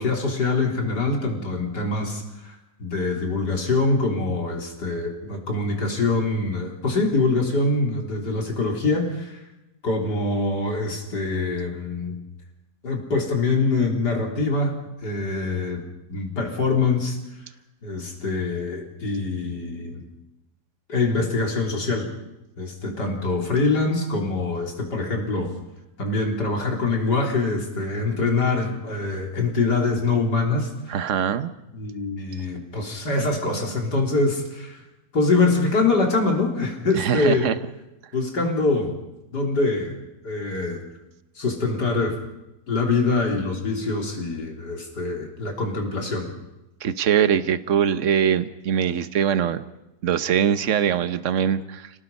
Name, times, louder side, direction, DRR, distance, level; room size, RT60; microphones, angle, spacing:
voice 1, 0.0-9.4 9.8-12.2 12.8-14.7 15.0-15.8 16.1-17.2 17.8-20.0 20.9-22.1 22.6-25.5 26.0-31.0 31.7-34.8 35.1-37.5 38.1-38.9 39.3-40.0 40.2-40.8 41.4-42.2 42.7-46.3, left 3 dB, 90° left, 1 dB, 4.1 m, -24 dB
voice 2, 30.9-31.5 37.0-37.5 46.8-49.6 50.0-51.9, right 8 dB, 55° right, 12 dB, 1.2 m, -22 dB
29.5 x 18.5 x 5.5 m, 0.96 s
omnidirectional pair, 1.7 m